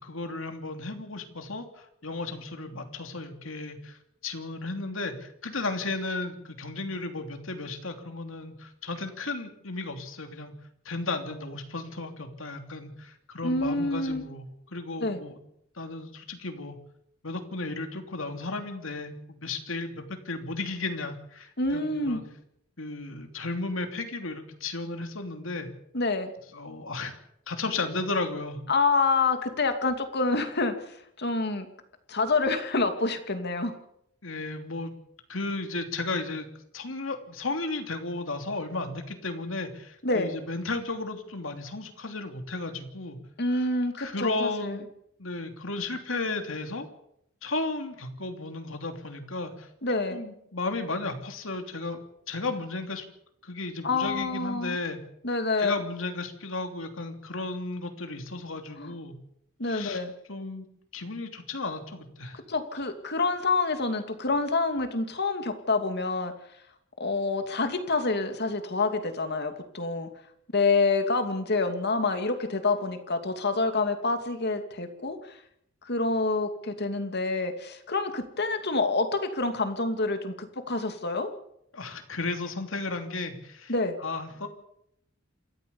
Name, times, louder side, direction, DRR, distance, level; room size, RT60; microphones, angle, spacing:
voice 1, 0.0-10.5 10.8-15.4 15.8-16.8 17.2-22.2 22.8-25.7 26.5-27.1 27.5-28.6 34.2-34.9 35.3-36.5 36.7-43.2 43.5-43.7 43.9-44.8 45.2-46.9 47.4-49.7 50.1-53.0 53.4-55.0 55.6-59.1 59.6-60.0 60.3-60.7 60.9-62.4 81.7-83.7 84.0-84.5, left 3 dB, 70° left, 6 dB, 3.1 m, -34 dB
voice 2, 13.4-14.2 15.0-15.2 21.6-22.2 25.9-26.3 28.7-31.7 32.1-33.7 40.0-40.3 43.4-44.8 49.8-50.2 53.8-54.8 55.2-55.8 58.8-58.9 59.6-60.1 62.3-66.3 67.0-70.1 70.5-75.4 75.8-81.3 83.7-83.9, left 3 dB, 55° left, 7 dB, 2.6 m, -27 dB
28.0 x 13.5 x 7.2 m, 0.74 s
head